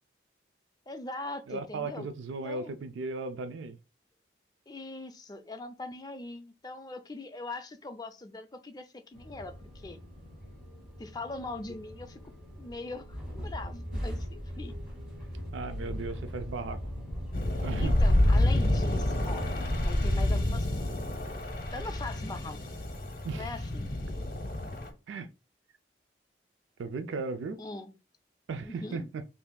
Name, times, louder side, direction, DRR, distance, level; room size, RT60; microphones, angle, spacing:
voice 1, 0.9-2.1 2.4-2.7 4.7-10.0 11.0-12.2 12.6-14.8 17.8-20.9 21.7-22.8 23.3-23.9 27.6-27.9 28.6-29.1, left 2 dB, 20° left, 0.4 m, -41 dB
voice 2, 1.5-3.8 15.5-16.8 17.6-18.0 19.4-19.5 23.2-23.5 25.1-25.3 26.8-27.6 28.5-29.2, right 4 dB, 85° right, 0.4 m, -36 dB
sound 1, 9.1-20.4, equal, 5° right, 2.1 m, -38 dB
sound 2, 17.3-24.9, left 1 dB, 50° left, 0.7 m, -28 dB
5.5 x 2.6 x 2.2 m
head